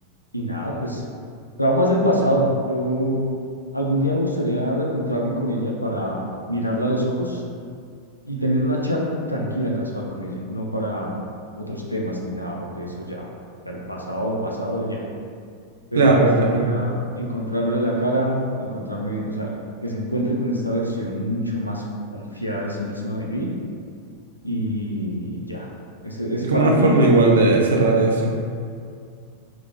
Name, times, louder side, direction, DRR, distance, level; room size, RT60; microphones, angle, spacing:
voice 1, 0.3-1.0 1.6-3.3 3.7-6.2 6.5-7.4 8.2-11.2 11.6-13.3 13.7-15.0 15.9-19.5 19.8-21.8 22.1-23.5 24.4-25.7 26.0-27.0, equal, 90° left, -2 dB, 0.3 m, -25 dB
voice 2, 16.0-16.7 26.5-28.3, right 2 dB, 65° right, 0 dB, 0.4 m, -17 dB
2.9 x 2.0 x 2.6 m, 2.2 s
figure-of-eight pair, 90°, 0 cm